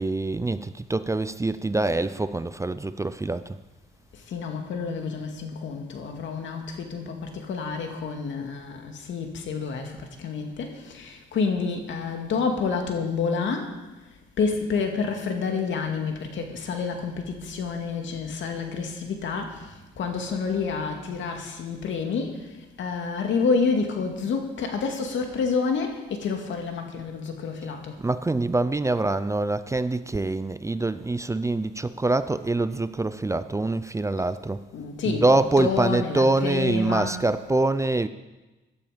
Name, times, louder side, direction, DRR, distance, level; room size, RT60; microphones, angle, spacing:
voice 1, 0.0-3.6 28.0-34.6 35.0-38.1, right 2 dB, 15° right, 13 dB, 0.5 m, -25 dB
voice 2, 4.3-13.7 14.4-22.5 22.8-28.0 34.7-37.2, left 5 dB, 70° left, 4 dB, 2.3 m, -29 dB
16.0 x 12.0 x 5.2 m, 1.1 s
cardioid pair, 90°, 20 cm